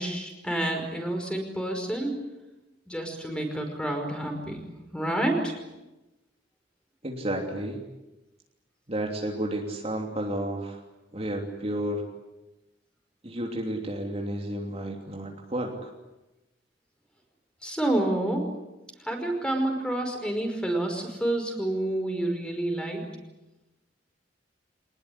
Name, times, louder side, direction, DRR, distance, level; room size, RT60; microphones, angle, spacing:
voice 1, 0.0-2.2 2.9-4.6 4.9-5.5 17.6-18.6 19.0-23.1, right 1 dB, 5° left, 4 dB, 5.3 m, -29 dB
voice 2, 7.0-7.8 8.9-10.8 11.1-12.0 13.2-15.9, right 1 dB, 35° right, 1 dB, 3.1 m, -31 dB
25.5 x 20.0 x 10.0 m, 1.0 s
head